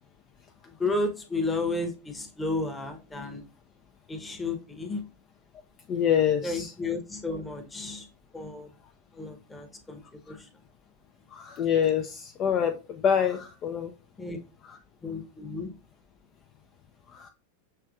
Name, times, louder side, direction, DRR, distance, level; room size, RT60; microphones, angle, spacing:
voice 1, 0.8-3.4 4.1-5.0 6.4-8.1 8.3-8.7 9.1-10.0 10.3-10.4 14.2-14.4 15.0-15.7, left 2 dB, 10° left, 0.9 m, -32 dB
voice 2, 5.9-6.7 10.3-10.4 11.3-13.9 14.6-14.8 17.1-17.3, left 8 dB, 30° left, 0.4 m, -26 dB
6.5 x 3.1 x 2.4 m
figure-of-eight pair, 90°, 0 cm